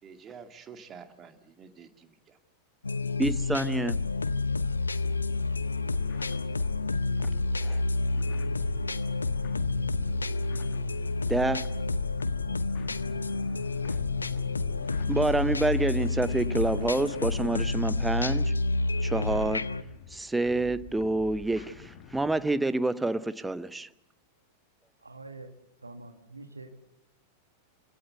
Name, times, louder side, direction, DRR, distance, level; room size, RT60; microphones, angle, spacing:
voice 1, 0.0-2.4, right 6 dB, 25° right, 2.2 m, -49 dB
sound 1, 2.8-19.8, left 3 dB, 80° left, 0.8 m, -29 dB
voice 2, 3.2-4.0 7.6-7.8 11.3-11.6 15.1-18.5 19.0-19.7 20.1-23.9, right 2 dB, 5° right, 0.8 m, -28 dB
sound 2, 5.0-22.7, left 8 dB, 45° left, 1.5 m, -48 dB
sound 3, 5.0-18.1, left 5 dB, 25° left, 7.0 m, -49 dB
voice 3, 25.0-25.5 25.8-26.8, right 2 dB, 80° right, 2.0 m, -45 dB
27.0 x 17.0 x 8.1 m
figure-of-eight pair, 90°, 0 cm